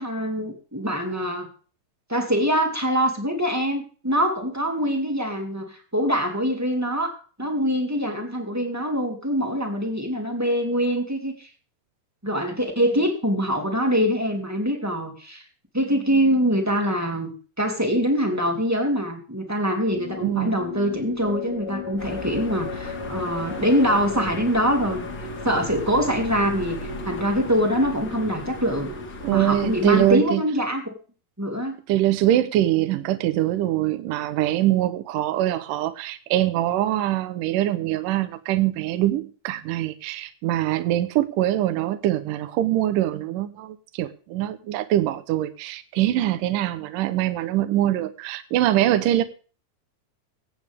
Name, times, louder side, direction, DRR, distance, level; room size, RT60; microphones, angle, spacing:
voice 1, 0.0-1.5 2.1-11.5 12.2-15.4 15.7-25.1 25.4-28.9 29.3-30.9 31.4-31.8, equal, 5° right, 2 dB, 1.5 m, -24 dB
sound 1, 19.9-30.4, left 3 dB, 20° left, 1.9 m, -36 dB
voice 2, 20.2-20.6 29.2-30.4 31.9-49.2, right 13 dB, 75° right, 10 dB, 2.3 m, -23 dB
sound 2, 22.0-30.2, left 2 dB, 40° left, 2.1 m, -37 dB
22.5 x 8.8 x 3.5 m, 0.39 s
omnidirectional pair, 4.1 m